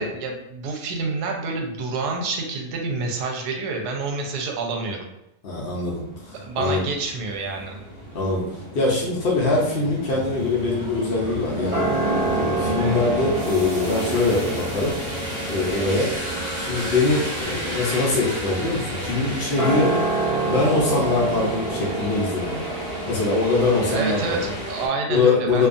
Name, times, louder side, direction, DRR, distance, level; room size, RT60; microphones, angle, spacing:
voice 1, 0.0-5.1 6.4-7.8 23.9-25.7, right 3 dB, 85° right, 2 dB, 1.1 m, -28 dB
voice 2, 5.4-6.8 8.1-11.9 12.3-15.0 15.5-16.1 16.6-20.0 20.5-22.6 23.1-24.4 25.1-25.7, left 3 dB, 75° left, -5 dB, 0.5 m, -23 dB
sound 1, 5.8-24.9, equal, 45° right, 0.7 m, -32 dB
sound 2, 10.7-24.5, right 3 dB, 65° right, 1.4 m, -29 dB
2.7 x 2.3 x 2.5 m, 0.84 s
omnidirectional pair, 1.7 m